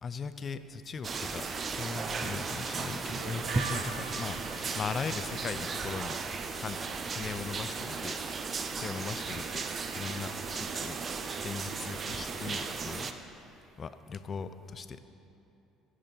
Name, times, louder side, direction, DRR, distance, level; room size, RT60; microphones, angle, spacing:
voice 1, 0.0-4.4 4.8-6.2 6.6-8.2 8.8-9.6 9.9-11.0 11.4-13.1 13.8-15.0, left 5 dB, 35° left, 11 dB, 0.5 m, -39 dB
sound 1, 1.0-13.1, right 4 dB, 35° right, 0.6 m, -36 dB
Harmonica, 3.2-12.8, right 4 dB, 75° right, 0.5 m, -49 dB
15.5 x 6.5 x 4.1 m, 2.9 s
figure-of-eight pair, 55°, 0 cm